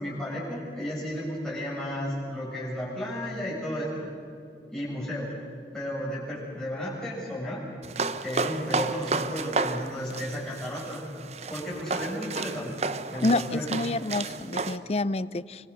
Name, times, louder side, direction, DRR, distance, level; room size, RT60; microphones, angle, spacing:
voice 1, 0.0-4.1 4.7-5.3 5.7-7.7 8.2-11.0 11.5-12.8 13.1-13.7, equal, 5° left, -8 dB, 7.7 m, -33 dB
sound 1, 7.8-14.8, right 4 dB, 35° right, 0.9 m, -32 dB
voice 2, 13.2-15.7, left 2 dB, 35° left, 17 dB, 0.5 m, -28 dB
25.5 x 25.5 x 6.5 m, 2.7 s
head